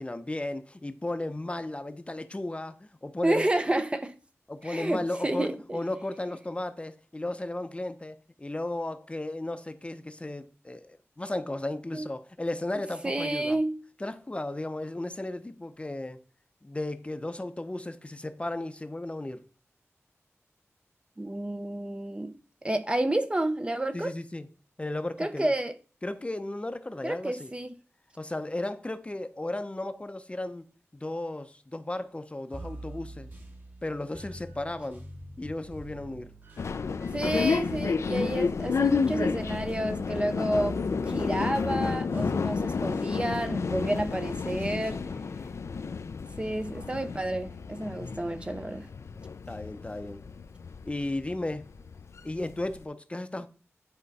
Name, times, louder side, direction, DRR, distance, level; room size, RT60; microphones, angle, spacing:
voice 1, 0.0-3.5 4.5-13.6 14.0-16.2 16.6-19.4 23.9-24.5 24.8-25.5 26.0-27.5 28.2-30.6 30.9-33.3 33.8-35.0 35.4-36.3 44.5-45.1 49.5-50.2 50.9-51.7 52.2-53.5, left 2 dB, 25° left, 0.7 m, -35 dB
voice 2, 3.2-4.1 4.6-5.8 11.9-12.1 13.0-13.8 21.2-22.3 22.6-24.1 25.2-25.7 27.0-27.7 37.1-40.8 41.1-45.0 46.4-48.9, right 1 dB, 20° right, 0.6 m, -30 dB
sound 1, 32.5-45.3, equal, 40° right, 1.5 m, -45 dB
sound 2, 36.6-52.8, left 5 dB, 75° left, 0.4 m, -31 dB
9.9 x 4.5 x 4.1 m
wide cardioid pair, 95°, 5 cm